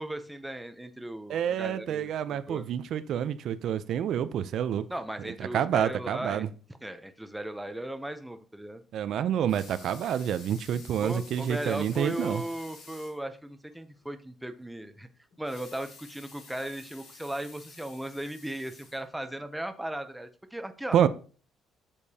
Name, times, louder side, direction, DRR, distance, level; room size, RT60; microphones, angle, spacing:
voice 1, 0.0-2.7 4.9-6.5 6.8-8.8 11.0-15.1 15.4-21.0, right 1 dB, 5° right, 0.6 m, -37 dB
voice 2, 1.3-4.8 5.2-6.5 8.9-12.4 20.9-21.1, right 9 dB, 55° right, 0.5 m, -28 dB
Water tap faucet / Sink (filling or washing) / Liquid, 9.3-13.2 13.7-13.8 14.1-14.2 15.3-19.4 20.0-20.1, left 4 dB, 75° left, 3.8 m, -51 dB
8.5 x 6.6 x 2.8 m
cardioid pair, 165°, 0 cm